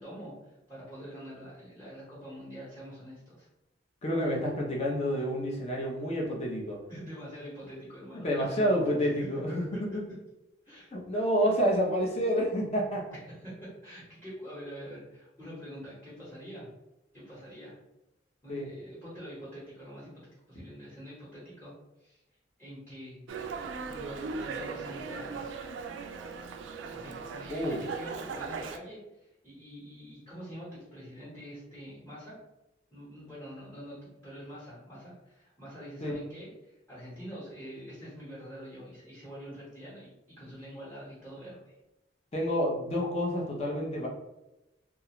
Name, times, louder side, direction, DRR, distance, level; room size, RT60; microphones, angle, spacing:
voice 1, 0.0-3.5 6.9-9.1 10.7-10.9 13.3-13.5 13.8-16.7 17.1-17.7 18.4-22.2 22.6-23.2 23.9-25.6 26.9-32.3 32.9-41.7, equal, 10° left, -8 dB, 1.0 m, -45 dB
voice 2, 4.0-6.8 8.2-9.9 10.9-13.0 18.5-18.7 27.5-27.8 36.0-36.2 42.3-44.1, equal, 35° left, -1 dB, 0.6 m, -29 dB
Dog, 23.3-28.8, right 5 dB, 80° right, 0.3 m, -38 dB
2.4 x 2.3 x 2.9 m, 0.93 s
head